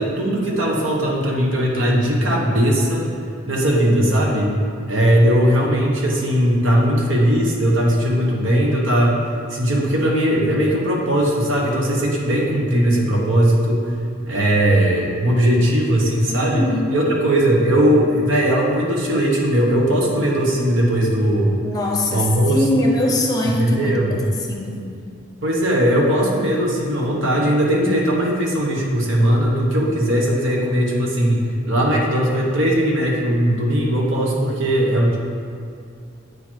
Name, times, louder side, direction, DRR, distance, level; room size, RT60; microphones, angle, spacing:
voice 1, 0.0-3.1 3.5-4.5 4.9-14.0 14.3-16.6 16.9-21.6 22.0-22.9 23.6-24.2 25.4-35.2, equal, 80° right, -2 dB, 1.2 m, -19 dB
voice 2, 16.3-17.0 21.6-24.9, left 2 dB, 20° left, 0 dB, 0.9 m, -23 dB
8.1 x 4.5 x 4.5 m, 2.4 s
head